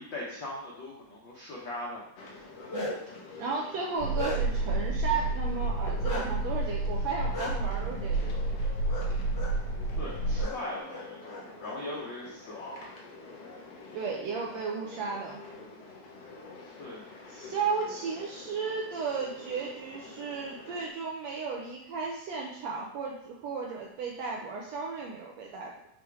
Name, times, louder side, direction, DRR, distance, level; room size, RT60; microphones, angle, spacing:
voice 1, 0.0-2.0 10.0-12.8 16.8-17.0, left 1 dB, 85° left, -4 dB, 1.0 m, -39 dB
sound 1, 2.2-20.9, left 3 dB, 65° left, 1.7 m, -48 dB
Bark, 2.4-3.1 3.7-4.7 6.0-6.2 7.3-7.5 8.9-9.1 9.3-9.5 10.3-10.5 10.9-11.7, left 2 dB, 30° left, 1.5 m, -36 dB
voice 2, 3.4-8.5 13.9-15.4 17.3-25.7, right 5 dB, 75° right, -2 dB, 1.6 m, -34 dB
sound 2, 4.0-10.4, right 2 dB, 50° left, 2.4 m, -30 dB
6.5 x 3.4 x 4.7 m, 0.80 s
omnidirectional pair, 3.8 m